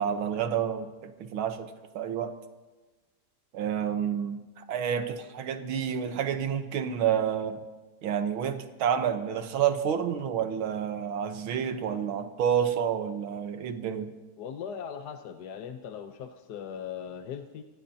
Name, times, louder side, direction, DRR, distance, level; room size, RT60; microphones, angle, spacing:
voice 1, 0.0-2.3 3.5-7.6 8.0-14.1, right 8 dB, 70° right, 8 dB, 1.7 m, -29 dB
voice 2, 14.4-17.6, left 8 dB, 65° left, 6 dB, 1.1 m, -39 dB
24.0 x 17.0 x 2.8 m, 1.2 s
omnidirectional pair, 2.4 m